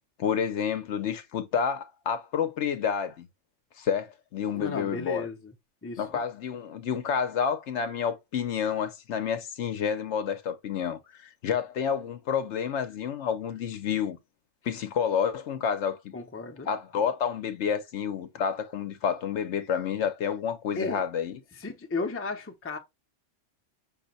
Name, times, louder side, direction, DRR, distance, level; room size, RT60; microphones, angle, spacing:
voice 1, 0.2-3.3 3.8-5.3 6.0-14.2 14.6-16.1 16.6-21.4, left 7 dB, 70° left, 0.9 m, -29 dB
voice 2, 4.5-5.5 5.8-6.2 16.1-16.7 20.8-21.0 21.5-22.8, left 3 dB, 15° left, 0.6 m, -34 dB
5.6 x 2.2 x 3.9 m
omnidirectional pair, 1.3 m